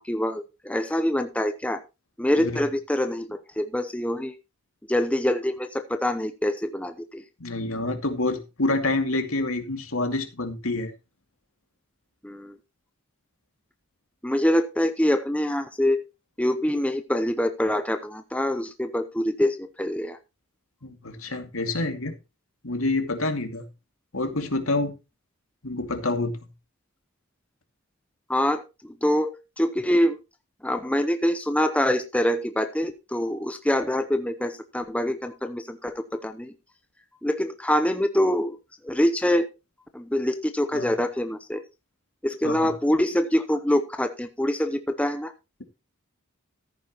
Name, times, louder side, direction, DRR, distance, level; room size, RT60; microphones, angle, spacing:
voice 1, 0.0-1.8 2.2-4.3 4.9-7.2 12.2-12.6 14.2-16.0 16.4-20.2 28.3-30.2 30.6-36.5 37.2-38.6 38.8-39.5 39.9-41.6 42.2-45.3, left 1 dB, 5° left, 8 dB, 0.8 m, -25 dB
voice 2, 7.4-10.9 20.8-22.1 22.6-23.6 24.1-24.9 25.6-26.3 40.7-40.9 42.4-42.7, left 2 dB, 70° left, 6 dB, 2.4 m, -27 dB
14.5 x 9.4 x 3.1 m, 0.27 s
head